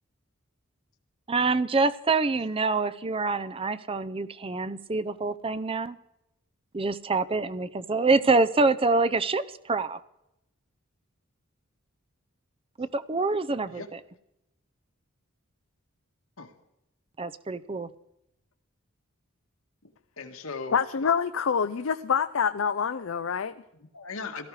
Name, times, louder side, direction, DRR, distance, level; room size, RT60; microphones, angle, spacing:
voice 1, 1.3-6.0 6.7-10.0 12.8-13.8 17.2-17.9, right 3 dB, 25° right, 14 dB, 0.6 m, -26 dB
voice 2, 19.8-20.8 23.7-24.5, left 4 dB, 85° left, 4 dB, 1.9 m, -39 dB
voice 3, 20.7-23.5, left 6 dB, 65° left, 11 dB, 0.5 m, -26 dB
17.5 x 14.0 x 4.9 m, 0.84 s
head